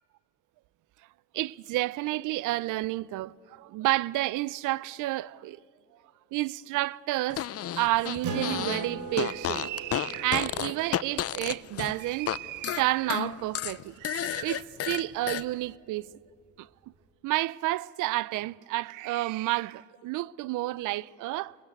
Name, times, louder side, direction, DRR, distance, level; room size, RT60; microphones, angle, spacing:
voice 1, 1.3-5.6 6.3-7.4 7.8-16.1 16.6-16.7 17.2-21.6, right 17 dB, 90° right, 0.5 m, -30 dB
Fart, 7.3-8.9 9.1-12.4 12.6-15.4, left 11 dB, 50° left, 0.6 m, -32 dB
Acoustic guitar, 8.2-13.2, right 3 dB, 75° right, 3.0 m, -40 dB
24.0 x 21.5 x 8.3 m
cardioid pair, 90°, 30 cm